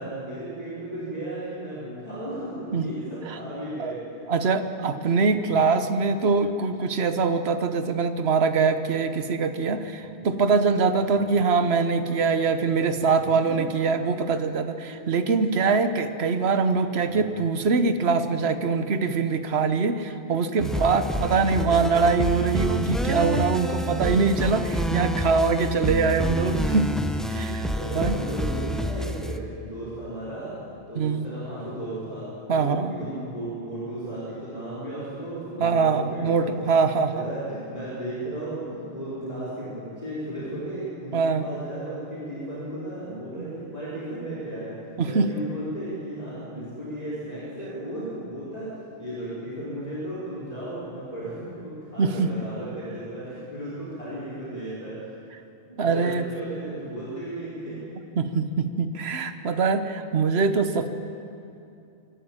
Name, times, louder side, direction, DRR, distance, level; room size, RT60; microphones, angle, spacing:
voice 1, 0.0-4.0 4.8-5.5 9.9-10.2 11.0-11.3 12.9-13.6 14.9-15.0 17.1-17.3 21.0-22.0 23.7-24.0 24.8-25.0 27.3-36.5 37.1-48.7 49.0-55.0 55.7-57.8, right 1 dB, 35° left, -10 dB, 4.7 m, -35 dB
voice 2, 4.3-26.9 27.3-27.6 27.9-28.2 30.9-31.3 32.5-32.9 35.6-37.3 41.1-41.5 43.4-43.5 45.0-45.3 52.0-52.3 55.8-56.2 58.2-60.9, right 4 dB, 65° right, 9 dB, 1.3 m, -23 dB
sound 1, 20.6-29.4, equal, ahead, 0.6 m, -28 dB
26.0 x 12.0 x 8.9 m, 2.6 s
omnidirectional pair, 1.2 m